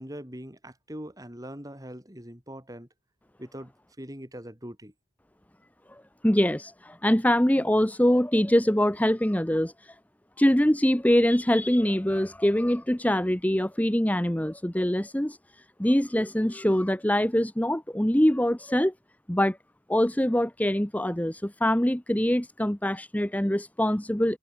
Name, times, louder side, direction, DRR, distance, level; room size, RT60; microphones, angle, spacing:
voice 1, 0.0-2.9 3.4-4.9, equal, 20° right, 4.9 m, -42 dB
voice 2, 5.9-10.0 10.4-18.9 19.3-19.6 19.9-24.4, equal, 10° left, 1.0 m, -24 dB
head